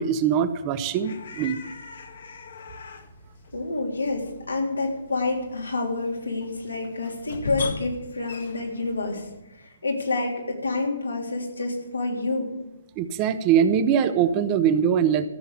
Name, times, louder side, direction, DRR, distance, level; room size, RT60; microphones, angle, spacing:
voice 1, 0.0-1.6 13.0-15.3, right 8 dB, 30° right, 10 dB, 1.0 m, -22 dB
sound 1, 0.7-9.4, left 4 dB, 65° left, 1.5 m, -40 dB
voice 2, 3.5-12.5, left 3 dB, 85° left, 0 dB, 3.5 m, -28 dB
14.0 x 7.2 x 8.2 m, 0.94 s
figure-of-eight pair, 130°, 0 cm